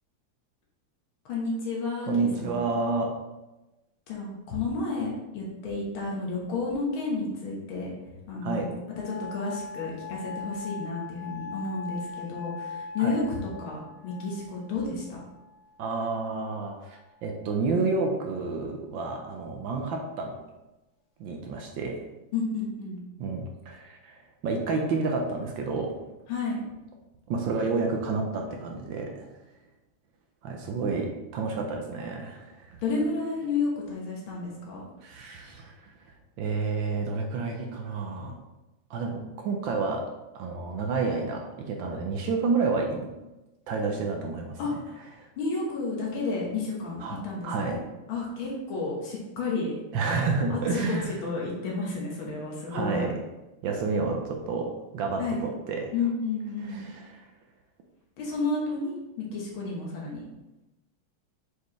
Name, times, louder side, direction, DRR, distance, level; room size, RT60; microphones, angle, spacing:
voice 1, 1.3-2.5 4.1-7.9 8.3-8.7 9.1-15.2 22.3-23.0 26.3-26.6 32.8-34.8 44.6-44.7 45.4-47.8 48.1-49.7 50.5-53.1 55.2-55.5 55.9-56.9 58.2-60.3, left 3 dB, 85° left, -3 dB, 2.1 m, -31 dB
voice 2, 2.1-3.1 8.4-8.7 13.0-13.2 15.8-20.4 21.2-22.0 23.2-25.9 27.3-29.3 30.4-32.8 35.0-35.8 36.4-38.3 38.9-40.1 40.3-43.0 43.7-44.6 45.2-45.3 47.0-47.2 47.4-47.8 49.9-51.1 52.7-53.1 53.6-55.9 56.6-57.0, right 4 dB, 75° right, 2 dB, 1.4 m, -30 dB
sound 1, 9.0-15.9 16.7-17.3, left 5 dB, 60° left, 1.9 m, -41 dB
6.9 x 4.7 x 3.1 m, 1.0 s
omnidirectional pair, 2.2 m